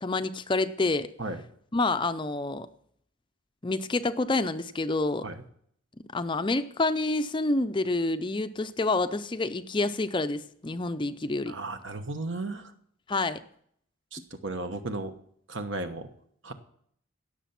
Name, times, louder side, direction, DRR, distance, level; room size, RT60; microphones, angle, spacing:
voice 1, 0.0-1.1 1.7-2.7 3.6-5.3 6.1-11.5 13.1-13.4, left 2 dB, 25° left, 11 dB, 0.5 m, -28 dB
voice 2, 11.5-12.7 14.1-15.2 15.5-16.1 16.4-16.5, right 2 dB, 65° right, 8 dB, 1.2 m, -35 dB
17.0 x 6.8 x 5.9 m, 0.65 s
head